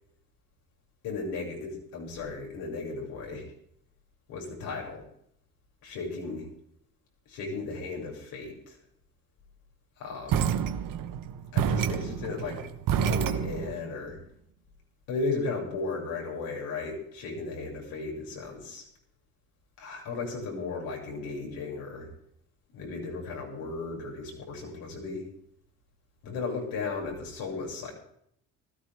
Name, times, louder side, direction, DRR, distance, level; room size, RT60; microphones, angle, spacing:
voice 1, 1.0-3.5 4.3-5.0 5.8-6.5 7.3-8.8 10.0-10.5 11.5-12.6 13.0-14.2 15.1-18.9 19.8-22.1 22.7-25.3 26.2-27.9, left 3 dB, 75° left, -1 dB, 7.1 m, -35 dB
sound 1, 10.3-13.8, right 8 dB, 60° right, 1.3 m, -28 dB
20.0 x 15.0 x 3.7 m, 0.69 s
supercardioid pair, 70°, 36 cm